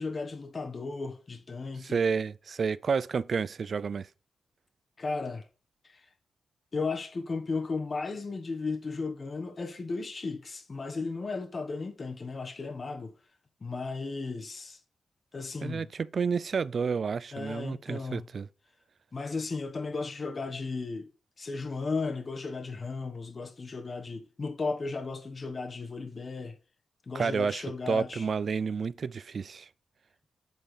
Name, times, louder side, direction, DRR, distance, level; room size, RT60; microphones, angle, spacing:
voice 1, 0.0-2.0 5.0-5.4 5.8-6.0 6.7-13.1 13.6-14.8 15.3-15.9 17.3-18.3 19.1-21.1 21.4-26.5 27.1-28.2, left 4 dB, 40° left, 1.4 m, -35 dB
voice 2, 1.8-4.1 15.6-18.5 27.1-29.7, right 5 dB, 55° right, 0.4 m, -30 dB
8.0 x 4.5 x 7.2 m
cardioid pair, 95°, 0 cm